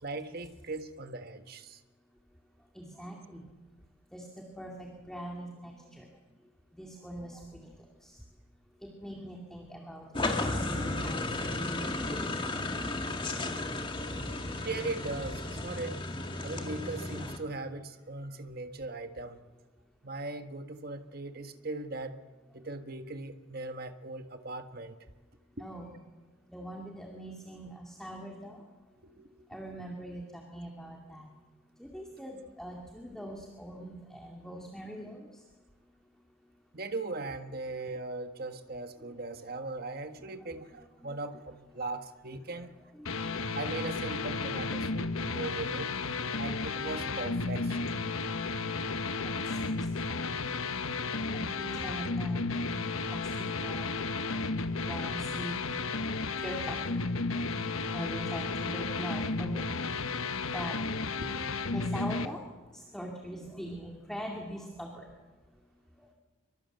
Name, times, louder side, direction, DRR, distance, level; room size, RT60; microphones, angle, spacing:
voice 1, 0.0-1.8 14.5-16.0 16.4-19.4 20.0-22.2 22.5-25.0 25.6-25.7 29.0-29.5 36.7-42.7 43.5-45.9 46.4-48.0 61.2-61.3, right 2 dB, 45° right, 1.5 m, -39 dB
voice 2, 2.7-3.4 4.1-6.1 6.7-7.7 8.0-8.2 8.8-11.8 12.1-12.9 25.6-26.0 26.5-28.6 29.5-31.3 31.8-35.4 40.4-40.5 41.0-41.1 42.9-43.3 49.2-50.4 51.3-52.5 53.1-53.9 54.8-55.6 56.4-57.0 57.9-59.7 60.5-60.8 61.7-62.4 62.7-65.1, equal, ahead, 2.3 m, -42 dB
sound 1, 10.1-17.4, left 2 dB, 25° left, 1.9 m, -34 dB
sound 2, 43.1-62.3, left 3 dB, 75° left, 1.2 m, -33 dB
24.5 x 23.5 x 7.9 m
head